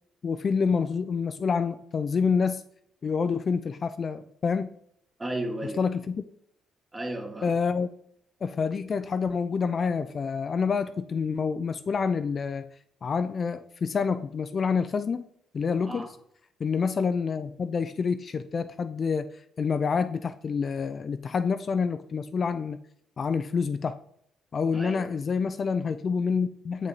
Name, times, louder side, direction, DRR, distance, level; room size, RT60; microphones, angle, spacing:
voice 1, 0.2-2.6 3.0-4.7 5.8-6.2 7.4-7.9 8.4-12.7 13.0-15.3 15.5-16.1 16.6-19.3 19.6-22.8 23.2-24.0 24.5-26.9, left 5 dB, 45° left, 10 dB, 0.4 m, -27 dB
voice 2, 5.2-5.9 6.9-7.5 15.9-16.1 24.7-25.2, right 1 dB, 20° right, 3 dB, 1.5 m, -34 dB
7.2 x 5.2 x 4.0 m, 0.69 s
cardioid pair, 90°, 0 cm